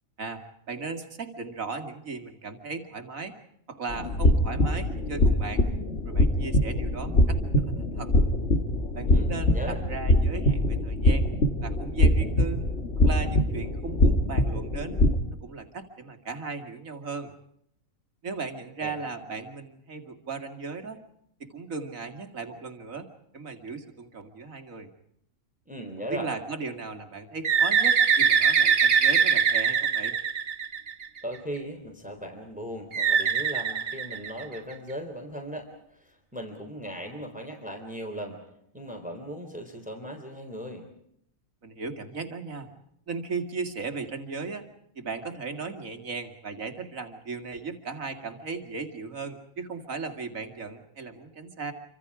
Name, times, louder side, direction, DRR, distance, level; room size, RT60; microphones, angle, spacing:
voice 1, 0.7-3.3 3.7-5.7 6.1-8.1 8.9-11.3 11.6-12.6 13.0-15.0 15.4-17.3 18.2-21.0 21.4-23.1 23.3-24.9 26.1-30.2 41.6-42.7 43.1-44.7 45.0-51.7, right 4 dB, 75° right, 6 dB, 2.7 m, -36 dB
sound 1, 3.9-15.2, left 1 dB, 50° left, 2.4 m, -23 dB
voice 2, 9.1-9.8 18.8-19.0 25.7-26.3 31.2-38.4 38.7-40.9, equal, 5° right, 3 dB, 3.7 m, -38 dB
Bird, 27.4-31.2 32.9-34.7, right 7 dB, 45° right, 1.2 m, -22 dB
28.5 x 25.5 x 4.9 m, 0.73 s
omnidirectional pair, 1.4 m